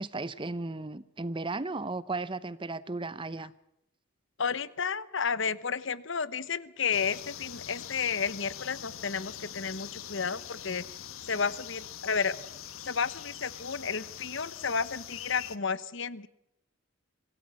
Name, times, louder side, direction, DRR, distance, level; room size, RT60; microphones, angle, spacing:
voice 1, 0.0-3.5, right 3 dB, 25° right, 17 dB, 0.8 m, -35 dB
voice 2, 4.4-10.8 11.2-12.4 12.8-16.3, left 6 dB, 60° left, 17 dB, 1.0 m, -32 dB
sound 1, 6.9-15.6, left 10 dB, 85° left, 1.2 m, -43 dB
25.0 x 17.5 x 7.3 m, 0.84 s
head